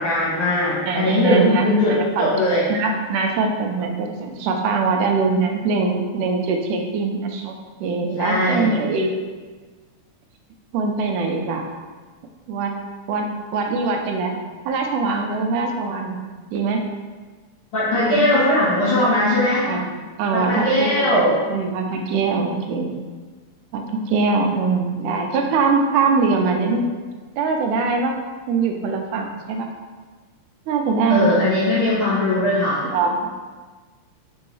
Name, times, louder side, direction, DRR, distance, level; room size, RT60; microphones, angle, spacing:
voice 1, 0.0-2.6 8.2-8.7 17.7-19.7 20.3-21.4 31.1-32.8, left 1 dB, 65° left, -8 dB, 1.4 m, -19 dB
voice 2, 0.9-1.9 2.2-2.3 2.7-7.6 7.8-9.1 10.7-11.7 12.5-12.7 13.1-14.4 14.7-16.2 16.5-16.8 18.1-18.3 19.7-19.9 20.2-21.1 21.5-22.9 23.7-26.8 27.4-28.2 28.5-29.7 30.7-31.3 32.8-33.3, right 4 dB, 90° right, 3 dB, 2.1 m, -22 dB
4.4 x 3.8 x 3.1 m, 1.4 s
omnidirectional pair, 3.5 m